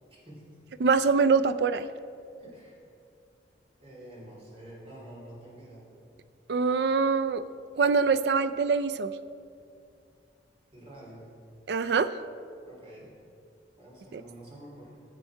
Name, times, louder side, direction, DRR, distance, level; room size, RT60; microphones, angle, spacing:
voice 1, 0.8-1.9 6.5-7.4 7.8-9.1 11.7-12.1 14.1-14.2, right 5 dB, 65° right, 12 dB, 0.4 m, -24 dB
voice 2, 2.4-2.8 3.8-5.9 10.7-11.3 12.6-13.1 13.8-15.0, right 1 dB, 30° right, -5 dB, 2.8 m, -48 dB
10.5 x 7.5 x 4.6 m, 2.5 s
head